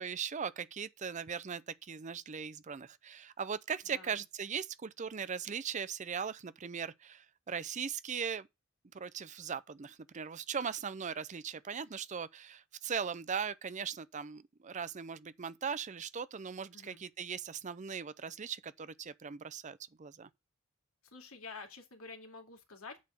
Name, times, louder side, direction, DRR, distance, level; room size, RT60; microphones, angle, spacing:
voice 1, 0.0-8.5 8.9-20.3, right 6 dB, 35° right, 0.5 m, -39 dB
voice 2, 3.8-4.2 16.7-17.0 21.0-23.0, left 4 dB, 80° left, 2.4 m, -49 dB
8.4 x 4.2 x 6.7 m
head